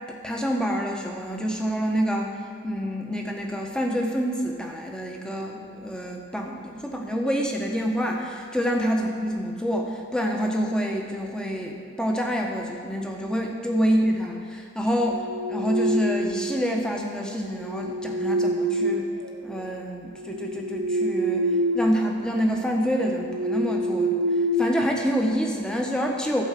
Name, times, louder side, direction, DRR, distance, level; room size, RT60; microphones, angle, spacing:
voice 1, 0.1-2.4 2.6-15.2 15.5-19.1 19.4-26.4, equal, 5° left, 0 dB, 1.1 m, -27 dB
sound 1, 15.0-16.5 17.5-19.6 20.1-22.0 22.3-22.5 23.0-25.4, right 1 dB, 85° right, 0.8 m, -26 dB
14.0 x 5.4 x 7.6 m, 2.3 s
head